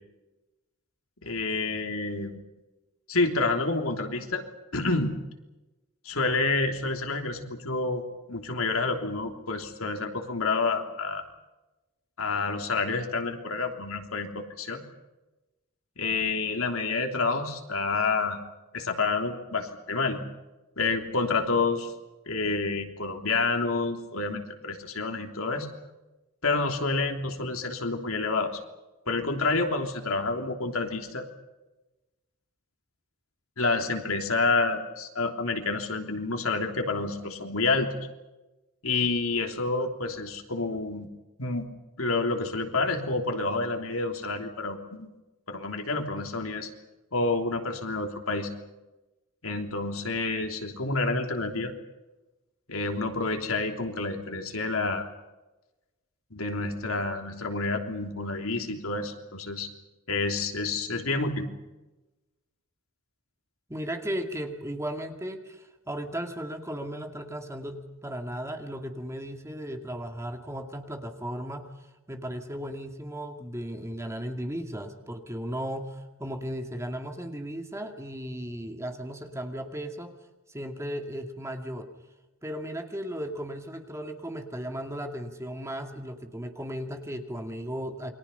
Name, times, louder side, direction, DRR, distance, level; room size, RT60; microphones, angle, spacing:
voice 1, 1.2-2.4 3.1-4.4 4.7-5.2 6.0-8.0 8.3-11.2 12.2-14.9 16.0-18.4 18.7-20.2 20.8-21.9 22.3-25.7 26.4-28.6 29.1-31.2 33.6-37.9 38.8-41.1 41.4-41.7 42.0-45.1 45.5-46.7 47.1-48.5 49.4-51.7 52.7-55.0 56.3-59.7 60.1-61.5, left 3 dB, 75° left, 4 dB, 3.3 m, -28 dB
voice 2, 63.7-71.7 72.1-80.1 80.5-81.9 82.4-88.1, equal, 15° right, 4 dB, 2.3 m, -36 dB
29.0 x 23.5 x 5.6 m, 1.1 s
head